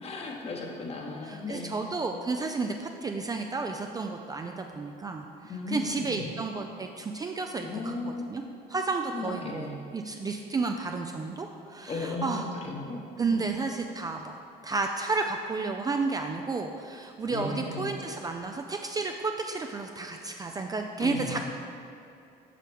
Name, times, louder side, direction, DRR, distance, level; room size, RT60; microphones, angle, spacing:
voice 1, 0.0-1.9 5.4-6.2 7.6-8.4 9.1-9.8 11.8-13.0 13.3-13.4 17.3-18.0 21.0-21.4, left 2 dB, 35° left, 0 dB, 1.0 m, -36 dB
voice 2, 1.2-5.2 5.7-7.9 8.3-8.4 8.7-12.5 13.2-14.3 14.6-21.5, right 3 dB, 20° right, 3 dB, 0.3 m, -32 dB
7.5 x 5.6 x 3.5 m, 2.7 s
cardioid pair, 110°, 17 cm